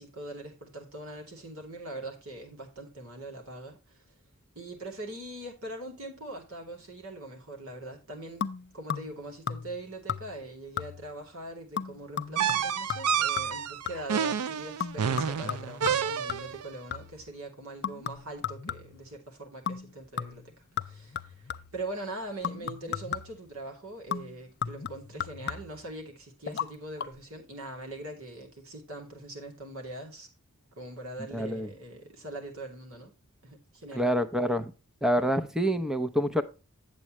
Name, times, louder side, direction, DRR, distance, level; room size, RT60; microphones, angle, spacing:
voice 1, 0.0-4.0 4.5-8.5 8.7-30.3 30.8-33.1 33.4-34.1, right 1 dB, 65° right, 2.7 m, -42 dB
sound 1, 8.4-9.2 9.5-9.8 10.1-10.5 10.8-11.2 11.8-14.2 14.8-17.3 17.8-19.1 19.7-19.9 20.2-21.8 22.4-23.5 24.1-25.9 26.5-26.7 27.0-27.1, left 8 dB, 50° left, 0.5 m, -36 dB
sound 2, 12.4-16.6, right 7 dB, 90° right, 0.5 m, -29 dB
voice 2, 31.3-31.7 33.9-34.7 35.0-36.4, equal, 5° right, 0.7 m, -27 dB
8.4 x 7.6 x 3.0 m
head